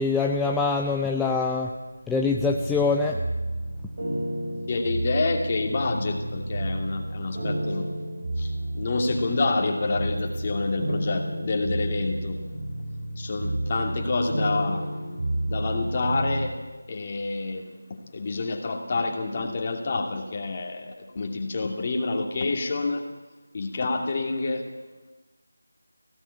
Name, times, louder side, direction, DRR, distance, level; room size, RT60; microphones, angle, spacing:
voice 1, 0.0-1.7 2.1-3.2, left 4 dB, 5° left, 0 dB, 0.6 m, -24 dB
sound 1, 2.3-16.5, right 1 dB, 50° right, 5.6 m, -31 dB
voice 2, 4.7-7.9 8.4-12.4 13.2-15.0 15.5-16.6 16.9-23.1 23.5-24.7, left 3 dB, 30° left, 3 dB, 2.6 m, -28 dB
18.5 x 17.0 x 8.5 m, 1.2 s
figure-of-eight pair, 165°, 0 cm